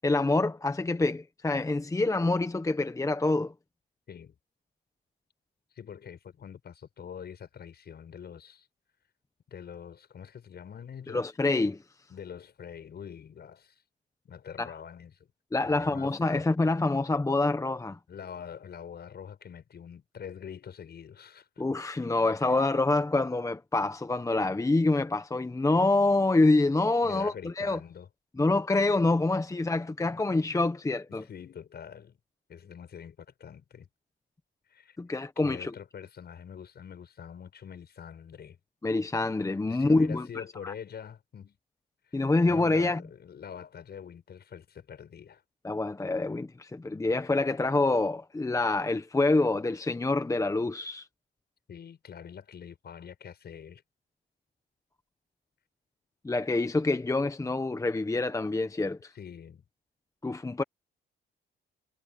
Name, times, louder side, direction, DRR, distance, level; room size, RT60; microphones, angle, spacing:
voice 1, 0.0-3.5 11.1-11.8 14.6-14.7 15.5-18.0 21.6-27.8 28.4-31.2 35.0-35.7 38.8-40.7 42.1-43.0 45.6-51.1 56.2-59.1 60.2-60.6, left 2 dB, 15° left, 1.1 m, -26 dB
voice 2, 5.7-8.7 9.5-11.2 12.1-13.8 14.2-15.1 15.6-16.5 18.1-21.5 22.0-22.1 22.5-22.6 27.0-28.1 31.1-32.2 32.5-33.9 34.7-35.0 35.4-38.6 39.7-41.6 42.0-42.2 42.4-45.4 51.7-53.8 59.1-59.6, left 8 dB, 55° left, 6.8 m, -45 dB
cardioid pair, 90°, 20 cm